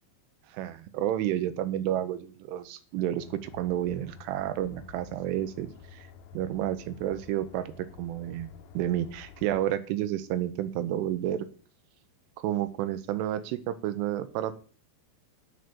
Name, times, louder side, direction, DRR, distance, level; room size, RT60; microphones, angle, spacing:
voice 1, 0.5-6.1 6.3-11.5 12.4-14.5, right 12 dB, 80° right, 12 dB, 3.3 m, -31 dB
sound 1, 3.2-9.7, left 7 dB, 90° left, 3.7 m, -50 dB
10.0 x 7.8 x 6.9 m, 0.39 s
omnidirectional pair, 5.7 m